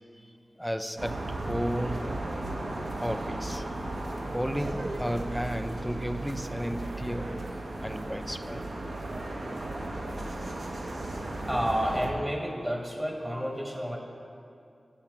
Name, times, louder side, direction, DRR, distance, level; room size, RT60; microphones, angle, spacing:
voice 1, 0.6-2.3 3.0-3.7 4.3-7.5 7.8-8.7, equal, ahead, 0.3 m, -33 dB
sound 1, 1.0-12.1, right 2 dB, 75° right, 0.7 m, -35 dB
voice 2, 11.5-14.0, equal, 20° right, 1.0 m, -30 dB
8.7 x 5.7 x 4.6 m
wide cardioid pair, 60°, 0 cm